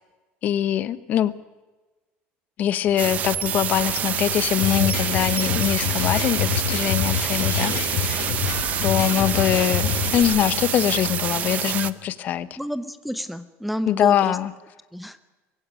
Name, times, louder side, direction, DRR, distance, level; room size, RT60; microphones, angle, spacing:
voice 1, 0.4-1.3 2.6-8.2 8.8-12.5 13.9-14.5, left 11 dB, 40° left, 16 dB, 0.9 m, -23 dB
sound 1, 2.8-11.9, left 15 dB, 65° left, 1.6 m, -36 dB
sound 2, 3.0-11.9, right 11 dB, 35° right, 0.7 m, -27 dB
sound 3, 4.6-10.2, left 8 dB, 85° left, 4.6 m, -27 dB
voice 2, 12.6-14.4 14.9-15.2, equal, ahead, 13 dB, 0.7 m, -30 dB
22.0 x 16.0 x 9.7 m, 1.2 s
cardioid pair, 170°, 4 cm